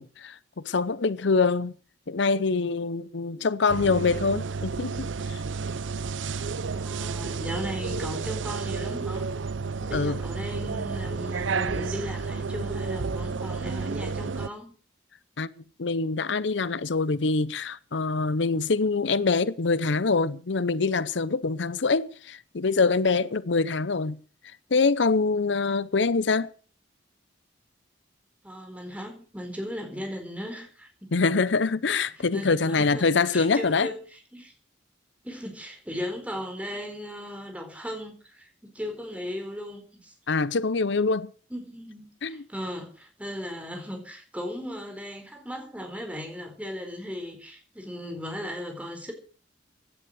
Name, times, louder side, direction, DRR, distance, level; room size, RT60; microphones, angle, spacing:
voice 1, 0.0-1.7 2.1-5.4 9.9-10.2 15.4-15.5 15.8-24.2 24.7-26.5 31.1-33.9 40.3-41.3 42.2-42.4, left 4 dB, 75° left, 0.7 m, -25 dB
sound 1, 3.7-14.5, right 4 dB, 85° right, 0.6 m, -31 dB
voice 2, 6.7-9.3 9.8-14.7 28.4-31.1 32.1-34.5 35.2-40.1 41.5-49.1, equal, 5° right, 4.3 m, -37 dB
16.5 x 10.5 x 6.4 m
head